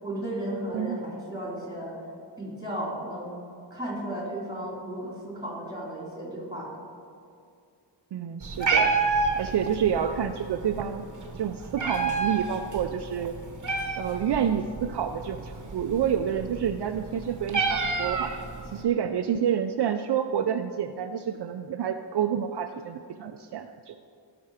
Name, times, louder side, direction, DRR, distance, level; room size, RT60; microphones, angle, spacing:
voice 1, 0.0-2.0 2.4-3.3 3.7-6.7, right 1 dB, 10° right, -3 dB, 3.1 m, -34 dB
voice 2, 8.1-9.0 9.4-11.0 11.3-13.3 14.0-18.4 18.7-24.0, right 8 dB, 65° right, 7 dB, 0.5 m, -28 dB
Meow, 8.4-18.8, right 4 dB, 40° right, 1.1 m, -30 dB
17.0 x 6.0 x 4.9 m, 2.4 s
wide cardioid pair, 110°, 44 cm